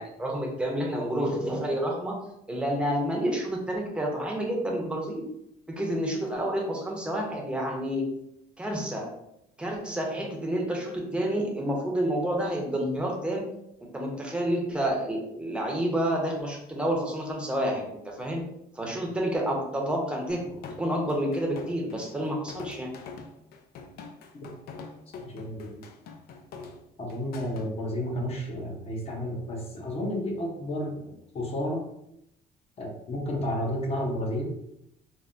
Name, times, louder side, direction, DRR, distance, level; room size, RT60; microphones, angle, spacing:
voice 1, 0.0-2.2 2.5-5.2 5.7-8.1 8.6-9.1 9.6-13.5 13.8-18.4 18.7-22.9, right 1 dB, 5° right, 0 dB, 0.7 m, -29 dB
sound 1, 20.3-27.7, left 4 dB, 70° left, 0.4 m, -44 dB
voice 2, 25.2-25.9 27.0-31.9 32.8-34.5, left 1 dB, 35° left, 0 dB, 0.8 m, -32 dB
3.4 x 2.1 x 2.5 m, 0.80 s
cardioid pair, 110°, 17 cm